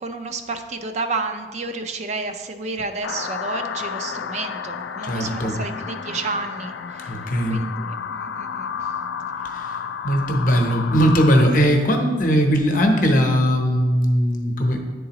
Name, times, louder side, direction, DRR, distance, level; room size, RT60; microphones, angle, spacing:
voice 1, 0.0-7.1 7.5-8.7, right 3 dB, 40° right, 7 dB, 0.4 m, -30 dB
sound 1, 3.0-11.4, left 7 dB, 85° left, 0.3 m, -31 dB
voice 2, 5.0-5.6 7.1-7.6 9.5-9.8 10.0-14.8, equal, 50° left, 3 dB, 0.8 m, -19 dB
10.0 x 3.8 x 2.9 m, 1.4 s
head